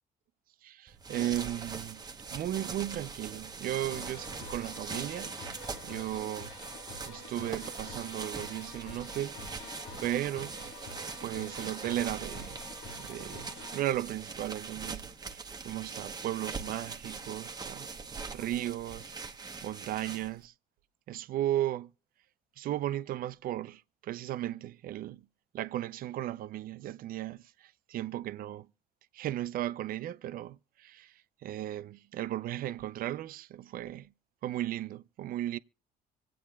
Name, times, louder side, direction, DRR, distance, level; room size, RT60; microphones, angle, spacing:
voice 1, 0.6-2.0 2.3-6.5 7.1-9.7 10.0-10.9 11.2-12.6 13.0-17.9 18.3-19.2 19.6-20.5 21.1-21.9 22.6-25.2 25.5-28.7 29.1-34.1 34.4-35.6, right 13 dB, 60° right, 0.5 m, -36 dB
sound 1, 0.9-20.5, right 4 dB, 25° right, 0.9 m, -42 dB
sound 2, 3.9-13.8, left 2 dB, 85° left, 1.7 m, -47 dB
25.5 x 8.5 x 2.3 m
cardioid pair, 110°, 17 cm